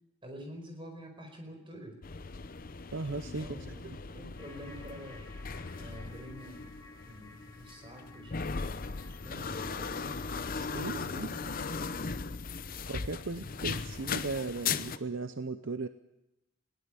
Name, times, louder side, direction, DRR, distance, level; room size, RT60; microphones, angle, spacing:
voice 1, 0.2-2.0 3.4-3.9 4.1-5.3 5.7-6.7 7.0-8.6 9.2-12.1, equal, 25° right, 4 dB, 4.9 m, -47 dB
sound 1, 2.0-15.0, left 5 dB, 40° left, 0.7 m, -38 dB
voice 2, 2.9-4.0 10.5-11.3 12.9-15.9, right 3 dB, 60° right, 10 dB, 0.7 m, -37 dB
sound 2, 4.4-10.3, left 3 dB, 15° left, 4.7 m, -56 dB
20.5 x 17.0 x 7.6 m, 0.91 s
head